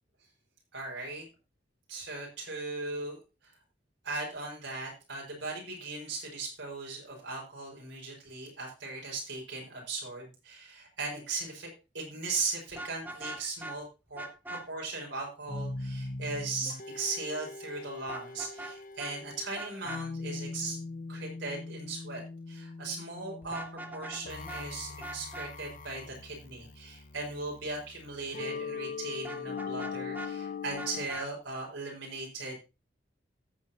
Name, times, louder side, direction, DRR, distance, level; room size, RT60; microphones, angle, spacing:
voice 1, 0.7-1.2 1.9-3.5 4.0-11.7 11.9-13.8 14.1-20.8 21.1-22.2 22.5-23.6 23.9-32.6, right 3 dB, 90° right, -1 dB, 5.6 m, -38 dB
Vehicle horn car horn honking, 12.7-13.8 14.2-14.6 18.1-18.7 19.0-19.1 19.6-20.0 23.4-24.2 24.5-24.6 25.0-25.5 29.2-30.3 30.8-31.3, right 2 dB, 10° right, 1.0 m, -41 dB
sound 1, 15.5-31.1, left 4 dB, 45° left, 0.7 m, -41 dB
14.5 x 8.3 x 3.0 m, 0.29 s
head